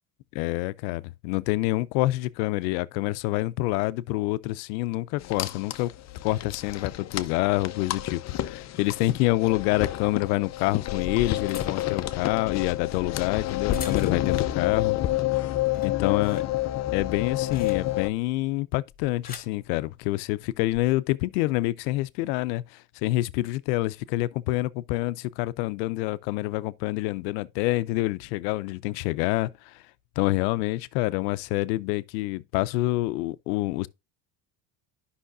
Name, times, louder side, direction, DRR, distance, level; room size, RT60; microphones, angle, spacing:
voice 1, 0.3-5.9 6.2-15.0 15.8-16.4 16.9-29.8 30.2-33.9, left 19 dB, 90° left, 0.6 m, -27 dB
sound 1, 5.2-18.1, left 14 dB, 35° left, 0.5 m, -29 dB
sound 2, 10.7-14.5 14.9-15.3 15.6-18.2 18.9-19.6 20.5-20.8, left 5 dB, 20° left, 2.1 m, -43 dB
10.0 x 5.7 x 2.5 m
supercardioid pair, 115°, 48 cm